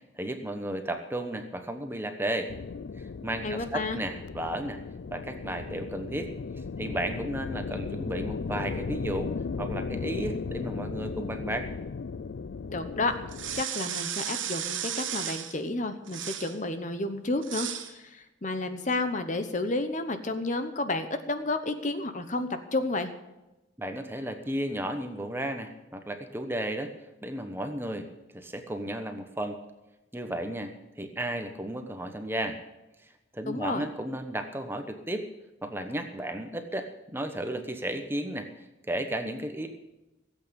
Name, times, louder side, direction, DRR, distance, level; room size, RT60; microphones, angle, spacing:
voice 1, 0.1-2.5 3.0-4.8 5.1-6.3 6.8-9.3 9.6-11.7 23.8-26.9 27.2-28.1 28.3-29.6 30.1-32.6 33.3-35.3 35.6-38.5 38.9-39.7, right 1 dB, 10° right, 6 dB, 1.0 m, -33 dB
sound 1, 2.5-13.6, left 4 dB, 60° left, 0.4 m, -36 dB
voice 2, 3.4-4.0 12.7-13.1 13.6-23.1 33.5-33.8, left 2 dB, 40° left, 9 dB, 0.9 m, -31 dB
sound 2, 13.3-15.6 16.1-16.6 17.4-17.9, right 10 dB, 70° right, 1.3 m, -34 dB
16.0 x 8.3 x 7.0 m, 1.0 s
head